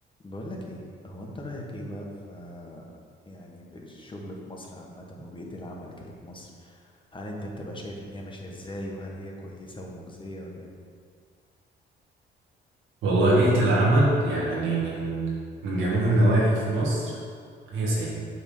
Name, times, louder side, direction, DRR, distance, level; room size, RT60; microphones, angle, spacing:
voice 1, 0.2-2.8 3.2-10.8, equal, 25° left, -1 dB, 1.2 m, -40 dB
voice 2, 13.0-15.3 15.6-17.2 17.7-18.1, right 1 dB, 85° right, -5 dB, 1.9 m, -22 dB
8.2 x 3.6 x 5.3 m, 2.1 s
cardioid pair, 90°, 20 cm